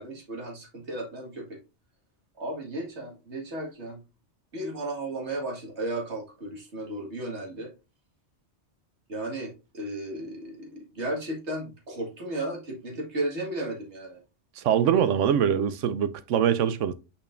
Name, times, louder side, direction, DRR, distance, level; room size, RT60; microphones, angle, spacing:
voice 1, 0.0-1.6 2.4-4.0 4.5-7.7 9.1-14.2, right 1 dB, 65° right, 2.1 m, -34 dB
voice 2, 14.6-16.9, right 9 dB, 80° right, 1.0 m, -23 dB
6.7 x 5.6 x 2.5 m
omnidirectional pair, 1.2 m